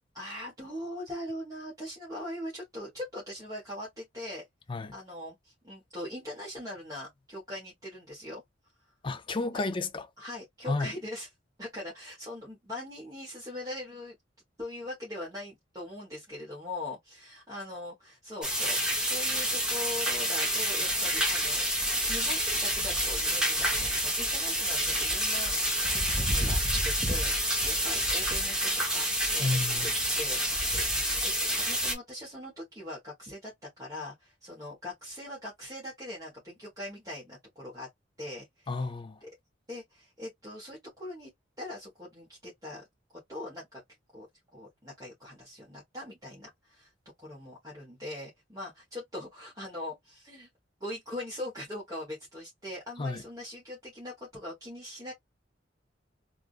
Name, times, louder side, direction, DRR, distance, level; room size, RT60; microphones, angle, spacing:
voice 1, 0.1-4.4 4.9-8.4 10.2-11.3 11.6-14.2 14.6-21.7 22.1-25.5 25.9-29.1 29.3-29.5 29.8-29.9 30.2-31.3 31.6-33.5 33.8-37.9 38.2-38.9 39.2-39.3 39.7-41.3 41.6-42.9 43.3-43.8 44.1-44.3 44.5-46.9 47.2-50.5 50.8-55.1, left 1 dB, 20° right, 1.4 m, -41 dB
voice 2, 9.0-10.0 10.7-10.9 29.4-29.9 38.7-39.1 53.0-53.2, left 3 dB, 25° left, 0.5 m, -31 dB
sound 1, 18.4-31.9, equal, 5° right, 1.1 m, -28 dB
3.6 x 2.5 x 2.5 m
head